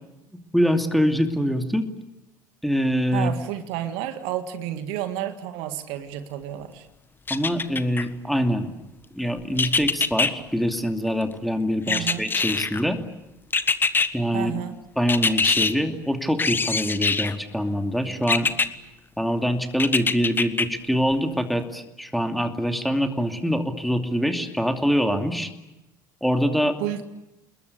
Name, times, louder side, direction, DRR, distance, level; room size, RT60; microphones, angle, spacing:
voice 1, 0.5-1.9 2.6-3.3 7.3-8.7 9.1-13.0 14.1-14.5 15.0-18.5 19.2-25.5 26.2-26.8, equal, ahead, 6 dB, 2.6 m, -24 dB
voice 2, 3.1-6.9 11.9-12.3 14.3-14.8 26.8-27.0, right 11 dB, 60° right, 9 dB, 1.9 m, -31 dB
sound 1, 7.3-8.0 9.6-10.3 11.9-12.8 13.5-14.1 15.1-15.7 16.4-17.3 18.3-18.7 19.8-20.6 21.1-21.2, left 4 dB, 20° left, 1.5 m, -23 dB
29.5 x 21.0 x 8.3 m, 0.94 s
figure-of-eight pair, 65°, 10 cm